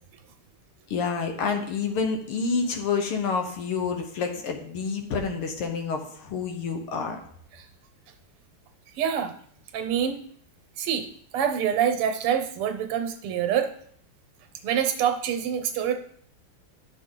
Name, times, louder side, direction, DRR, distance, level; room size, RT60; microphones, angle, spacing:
voice 1, 0.9-7.2, left 5 dB, 80° left, 4 dB, 2.0 m, -28 dB
voice 2, 9.0-9.3 9.7-10.2 10.8-11.1 11.3-13.7 14.6-15.9, right 8 dB, 90° right, 6 dB, 1.8 m, -26 dB
10.5 x 6.0 x 3.8 m, 0.64 s
omnidirectional pair, 2.4 m